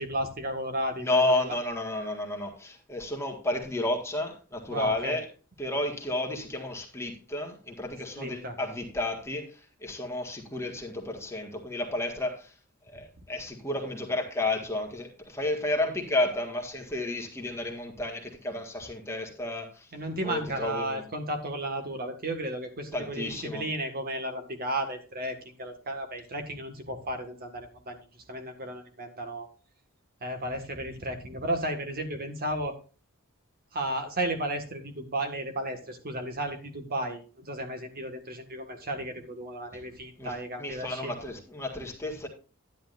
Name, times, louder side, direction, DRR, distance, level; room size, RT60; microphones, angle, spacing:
voice 1, 0.0-1.1 1.4-1.6 4.7-5.2 8.2-8.6 19.9-29.5 30.2-32.8 33.7-41.1, right 1 dB, 45° right, 1.7 m, -34 dB
voice 2, 1.0-5.3 5.6-12.5 12.9-19.9 20.2-21.1 22.9-23.7 39.7-39.8 40.2-42.3, left 2 dB, 10° left, 1.7 m, -32 dB
11.5 x 10.0 x 2.6 m
head